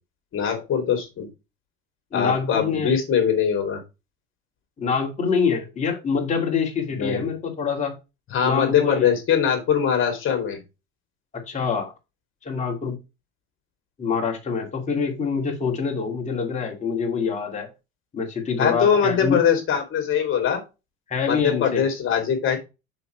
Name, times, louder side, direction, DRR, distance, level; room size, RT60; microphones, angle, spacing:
voice 1, 0.3-1.3 2.1-3.8 6.9-7.3 8.3-10.6 18.6-20.6 21.2-22.6, left 7 dB, 40° left, 4 dB, 2.9 m, -22 dB
voice 2, 2.1-2.9 4.8-8.0 8.4-9.1 11.3-11.9 12.4-13.0 14.0-17.7 18.1-19.4 21.1-21.8, left 5 dB, 20° left, 0 dB, 2.6 m, -25 dB
6.9 x 4.9 x 4.6 m, 0.26 s
cardioid pair, 145°, 32 cm